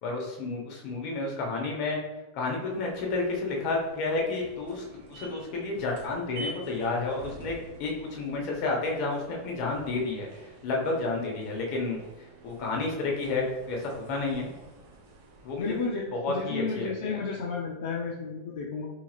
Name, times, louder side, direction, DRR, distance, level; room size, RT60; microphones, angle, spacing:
voice 1, 0.0-2.0 2.3-7.5 7.8-10.3 10.6-12.0 12.4-14.5 15.4-15.8 16.1-17.2, left 3 dB, 50° left, 0 dB, 1.1 m, -30 dB
sound 1, 2.6-16.1, right 2 dB, 65° right, 1.0 m, -49 dB
voice 2, 15.6-18.9, left 4 dB, 70° left, -1 dB, 0.5 m, -32 dB
3.7 x 2.9 x 2.4 m, 1.0 s
hypercardioid pair, 115°, 0 cm